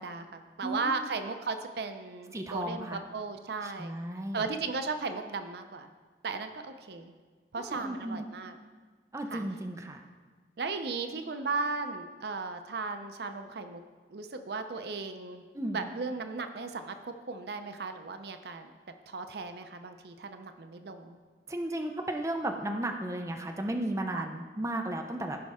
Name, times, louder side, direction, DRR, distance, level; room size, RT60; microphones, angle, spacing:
voice 1, 0.0-4.0 4.3-5.9 6.2-7.1 7.5-8.6 9.3-9.4 10.6-13.8 14.1-15.4 15.7-18.7 19.1-21.2 24.1-24.3, right 4 dB, 70° right, 7 dB, 0.6 m, -36 dB
voice 2, 0.6-1.1 2.3-3.0 3.6-4.5 7.6-8.3 9.1-10.0 15.5-15.8 21.5-25.4, right 1 dB, 15° right, 3 dB, 0.6 m, -34 dB
15.5 x 5.2 x 3.6 m, 1.5 s
head